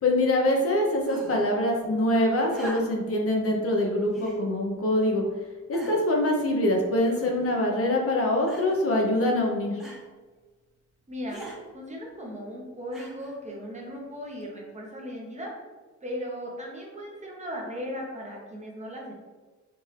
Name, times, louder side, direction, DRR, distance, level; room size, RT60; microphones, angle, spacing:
voice 1, 0.0-5.2 5.7-9.8, left 1 dB, 50° left, 0 dB, 1.0 m, -24 dB
sound 1, 1.0-1.5 2.5-3.1 4.1-4.4 5.1-5.2 5.7-6.2 7.0-7.5 8.5-8.9 9.8-10.1 11.3-11.6 12.9-13.4 14.4-14.5, right 1 dB, ahead, 1.2 m, -42 dB
voice 2, 11.1-11.4 11.7-15.5 16.0-19.1, equal, 25° right, -2 dB, 1.1 m, -37 dB
4.4 x 2.9 x 3.3 m, 1.3 s
cardioid pair, 90°, 30 cm